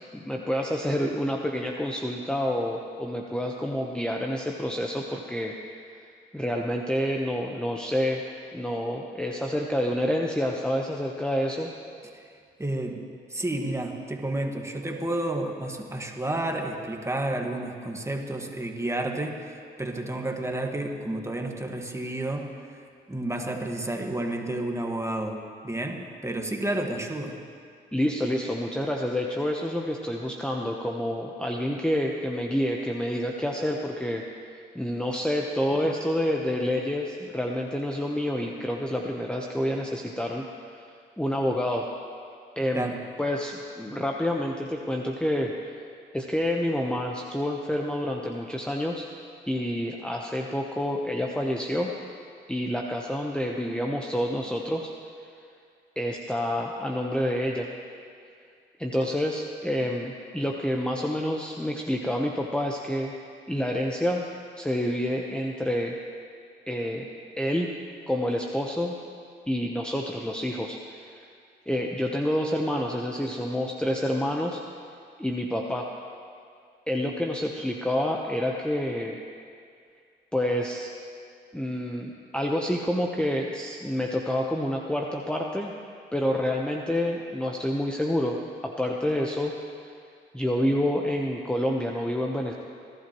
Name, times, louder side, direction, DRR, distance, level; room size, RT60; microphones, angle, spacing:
voice 1, 0.1-5.5 6.3-8.2 8.5-11.7 27.9-34.2 34.7-40.5 40.7-40.9 41.2-41.9 42.6-42.9 43.2-45.5 46.1-49.1 49.5-51.9 52.5-54.9 56.0-57.7 58.8-63.1 63.5-64.3 64.6-66.0 66.7-67.1 67.4-67.7 68.1-69.0 69.5-71.2 71.7-74.6 75.2-75.9 76.9-79.2 80.3-80.9 81.5-85.7 86.1-88.4 88.6-89.9 90.3-92.5, left 1 dB, 5° left, 0 dB, 1.0 m, -28 dB
voice 2, 12.6-22.8 23.1-27.4 42.7-43.1, right 1 dB, 15° right, 2 dB, 1.7 m, -31 dB
22.0 x 11.5 x 3.1 m, 2.3 s
supercardioid pair, 60°, 20 cm